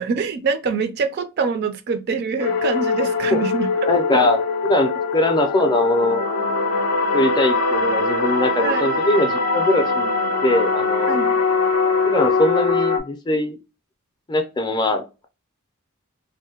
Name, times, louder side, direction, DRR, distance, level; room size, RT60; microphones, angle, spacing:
voice 1, 0.0-3.7 4.1-4.2 8.6-8.9 11.1-11.4, right 5 dB, 45° right, 0.3 m, -24 dB
sound 1, 2.4-13.0, left 4 dB, 75° left, 0.5 m, -22 dB
voice 2, 3.9-6.2 7.1-10.1 10.4-11.2 12.1-13.6 14.3-15.3, left 1 dB, 20° left, 0.4 m, -21 dB
2.6 x 2.1 x 2.7 m
head